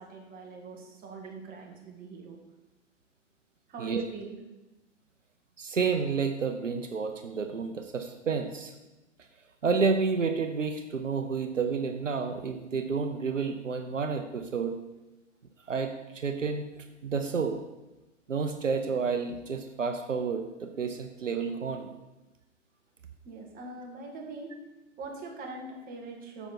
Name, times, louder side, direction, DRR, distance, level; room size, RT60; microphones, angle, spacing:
voice 1, 0.0-2.4 3.7-4.4 23.2-24.5 25.0-26.5, right 3 dB, 25° right, 0 dB, 2.1 m, -42 dB
voice 2, 5.6-8.7 9.6-14.8 15.7-17.6 18.3-21.9, right 5 dB, 80° right, 7 dB, 0.9 m, -30 dB
8.9 x 6.9 x 4.4 m, 1.0 s
figure-of-eight pair, 110°, 37 cm